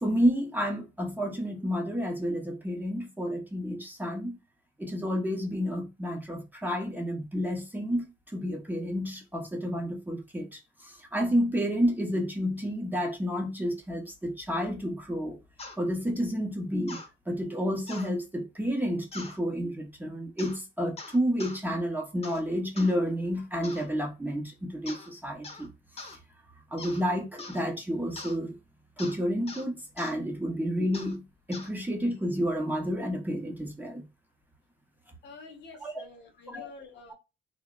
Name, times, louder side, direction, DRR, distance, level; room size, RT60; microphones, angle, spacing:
voice 1, 0.0-4.4 4.8-15.4 15.8-25.7 26.7-28.6 29.0-34.0 35.8-35.9 36.5-36.7, equal, 10° right, 0.7 m, -30 dB
sound 1, 15.6-15.8 16.9-17.1 17.9-18.1 19.1-19.4 20.4-20.6 21.0-21.6 22.2-22.4 22.8-22.9 23.6-23.9 24.9-25.1 25.4-25.7 26.0-26.2 26.8-27.0 27.4-27.6 28.2-28.4 29.0-29.2 29.5-29.7 30.0-30.2 30.9-31.1 31.5-31.7, left 3 dB, 30° left, 0.8 m, -43 dB
voice 2, 35.2-37.1, left 3 dB, 60° left, 0.9 m, -48 dB
2.7 x 2.1 x 2.3 m
cardioid pair, 90°, 20 cm